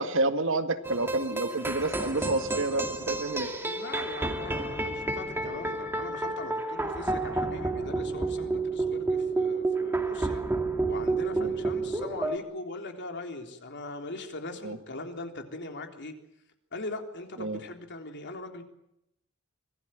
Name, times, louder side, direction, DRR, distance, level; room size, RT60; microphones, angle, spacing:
voice 1, 0.0-3.5 11.3-11.5 14.6-14.8 17.4-17.6, right 2 dB, 60° right, 8 dB, 2.0 m, -29 dB
sound 1, 0.8-12.4, right 2 dB, 10° right, 2.5 m, -30 dB
voice 2, 3.6-10.4 10.9-16.1 16.7-18.6, left 2 dB, 55° left, 4 dB, 3.6 m, -40 dB
25.5 x 19.0 x 9.1 m, 0.80 s
head